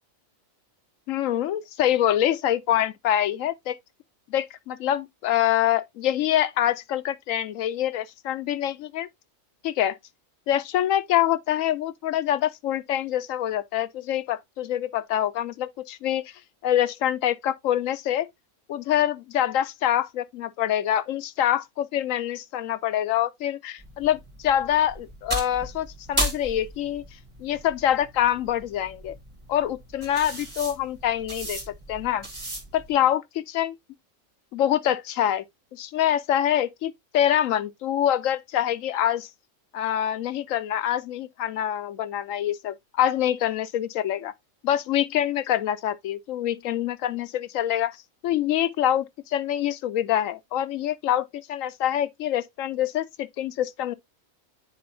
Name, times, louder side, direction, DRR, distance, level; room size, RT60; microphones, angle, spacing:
voice 1, 1.1-3.8 4.3-9.1 9.6-10.0 10.5-16.3 16.6-18.3 18.7-27.0 27.4-29.2 29.5-31.6 31.9-32.3 32.7-33.7 34.5-35.5 35.7-39.3 39.7-44.3 44.6-48.0 48.2-53.9, left 11 dB, 80° left, 1.0 m, -25 dB
sound 1, 23.8-32.9, right 1 dB, 20° right, 1.7 m, -35 dB
9.4 x 4.3 x 2.6 m
omnidirectional pair, 1.4 m